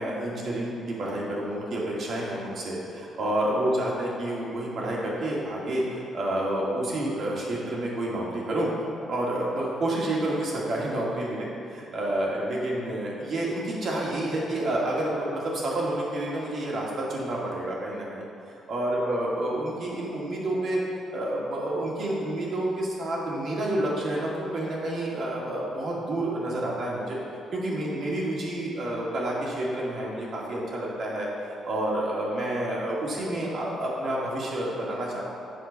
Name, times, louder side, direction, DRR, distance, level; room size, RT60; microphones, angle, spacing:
voice 1, 0.0-8.7 9.1-18.2 18.7-20.8 21.1-27.2 27.5-35.2, right 1 dB, 55° right, -4 dB, 2.2 m, -29 dB
7.9 x 4.5 x 6.9 m, 2.6 s
cardioid pair, 90°, 0 cm